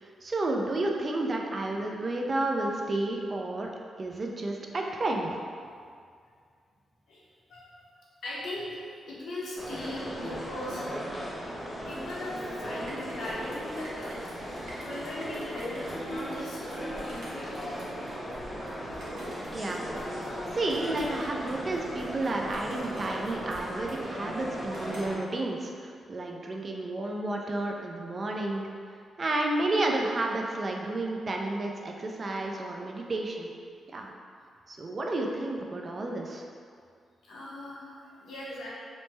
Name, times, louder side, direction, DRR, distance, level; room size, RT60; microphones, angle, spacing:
voice 1, 0.0-3.7 4.0-5.4 19.5-19.9 20.5-28.6 29.2-33.5 33.9-34.1 34.7-36.5, right 2 dB, 40° right, 1 dB, 0.3 m, -31 dB
voice 2, 7.5-7.8 8.2-8.8 9.0-11.3 11.8-14.5 14.8-15.8 16.0-17.5 37.2-38.7, left 1 dB, 80° left, -6 dB, 0.7 m, -39 dB
sound 1, 9.6-25.1, equal, ahead, 0.8 m, -37 dB
sound 2, 11.9-25.3, right 1 dB, 85° right, 0.7 m, -49 dB
3.1 x 2.0 x 3.2 m, 2.2 s
cardioid pair, 95°, 0 cm